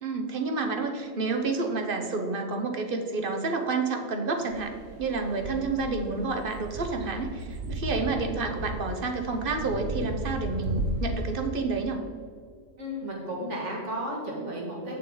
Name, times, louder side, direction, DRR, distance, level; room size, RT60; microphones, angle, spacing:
voice 1, 0.0-4.7 5.0-12.0, right 3 dB, 45° right, 4 dB, 1.0 m, -29 dB
sound 1, 4.4-11.4, right 1 dB, 80° right, 1.4 m, -35 dB
voice 2, 12.8-14.9, equal, 65° right, -3 dB, 2.2 m, -33 dB
8.5 x 6.6 x 3.9 m, 2.1 s
omnidirectional pair, 1.3 m